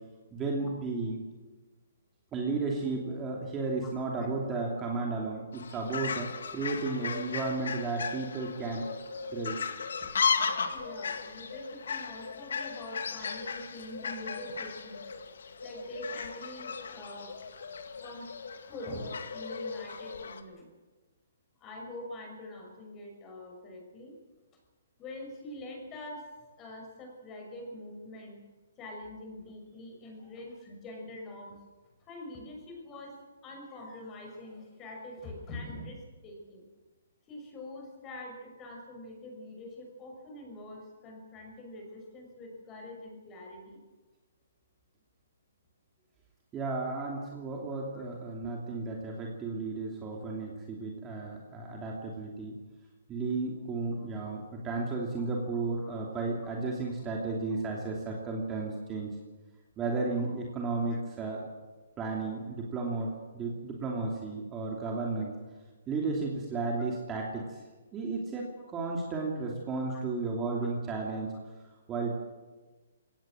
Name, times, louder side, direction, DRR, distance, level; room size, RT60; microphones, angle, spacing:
voice 1, 0.3-1.2 2.3-8.9 9.3-9.6 46.5-52.5 53.1-59.2 59.8-61.5 62.0-65.3 65.9-67.6 67.9-71.3 71.9-72.1, right 3 dB, 15° right, -1 dB, 2.8 m, -33 dB
Fowl, 5.5-20.4, left 5 dB, 75° left, 2.2 m, -36 dB
voice 2, 10.7-15.0 15.6-17.3 18.0-18.3 18.6-20.7 21.6-24.1 25.0-26.3 26.6-28.4 28.8-31.5 32.0-33.2 33.4-36.6 37.3-43.8 47.9-48.0 54.0-54.1 55.7-56.0 60.2-60.4 60.9-61.0 69.9-70.0, left 1 dB, 20° left, 2 dB, 6.3 m, -44 dB
21.5 x 18.0 x 7.8 m, 1.3 s
hypercardioid pair, 160°, 0 cm